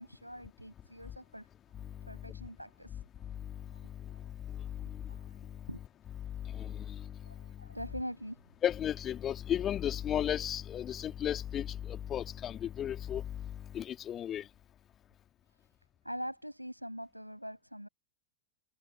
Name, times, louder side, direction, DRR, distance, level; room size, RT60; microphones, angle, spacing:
voice 1, 0.0-1.5 2.0-3.1 3.7-4.2 4.6-4.7 5.1-5.4 5.7-5.8 6.6-6.7 7.2-8.6 16.0-17.9, equal, 90° right, 6.8 m, -44 dB
voice 2, 6.5-7.0 8.6-13.2 13.7-14.4, left 10 dB, 25° left, 3.1 m, -34 dB
figure-of-eight pair, 90°, 0 cm